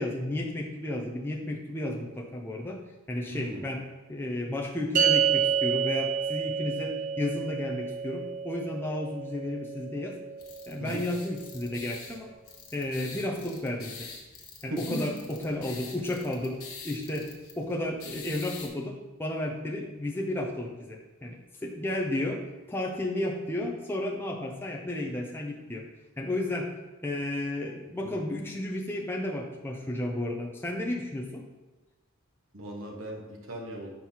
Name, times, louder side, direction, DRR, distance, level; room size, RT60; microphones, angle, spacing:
voice 1, 0.0-2.8 3.1-3.8 4.1-10.2 10.7-12.4 12.7-14.1 14.6-16.6 16.8-22.4 22.7-25.9 26.2-26.7 27.0-31.5, left 1 dB, 10° left, -1 dB, 0.6 m, -33 dB
voice 2, 3.3-3.7 10.8-11.0 14.7-15.2 27.9-28.2 32.5-33.9, right 1 dB, 65° right, 1 dB, 1.3 m, -37 dB
sound 1, 5.0-11.5, right 7 dB, 35° right, 0.6 m, -30 dB
sound 2, 10.4-18.7, left 5 dB, 85° left, 1.2 m, -46 dB
5.5 x 4.7 x 5.6 m, 1.1 s
head